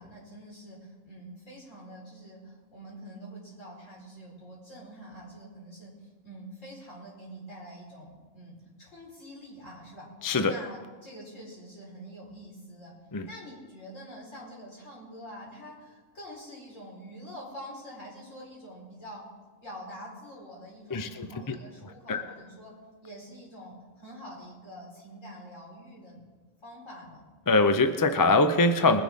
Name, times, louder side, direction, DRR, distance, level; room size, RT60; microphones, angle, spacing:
voice 1, 0.0-10.1 10.4-12.9 13.2-19.2 19.6-22.7 23.0-26.2 26.6-27.2, equal, 60° left, -4 dB, 4.9 m, -46 dB
voice 2, 10.2-10.5 13.1-13.3 20.9-21.6 22.1-22.2 27.5-29.0, left 3 dB, 30° left, 9 dB, 0.4 m, -23 dB
21.0 x 10.5 x 3.6 m, 1.4 s
omnidirectional pair, 1.5 m